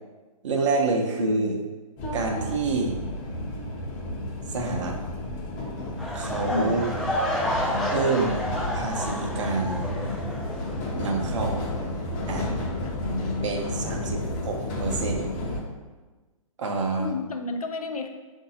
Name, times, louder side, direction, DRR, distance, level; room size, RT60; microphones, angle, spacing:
voice 1, 0.4-1.5 2.1-3.0 4.5-5.0 6.1-6.9 7.9-8.5 8.7-9.9 10.9-11.6 12.3-12.5 13.4-14.2 14.5-15.3 16.6-17.1, right 3 dB, 55° right, 2 dB, 0.8 m, -27 dB
voice 2, 1.2-1.6 6.5-6.9 12.9-14.4 17.0-18.1, left 4 dB, 90° left, 5 dB, 0.5 m, -32 dB
sound 1, 2.0-15.6, left 1 dB, 30° left, 0.8 m, -32 dB
sound 2, 6.0-11.0 11.3-11.6 12.2-12.3, equal, 5° left, 0.4 m, -30 dB
3.9 x 2.7 x 4.1 m, 1.3 s
hypercardioid pair, 135°, 18 cm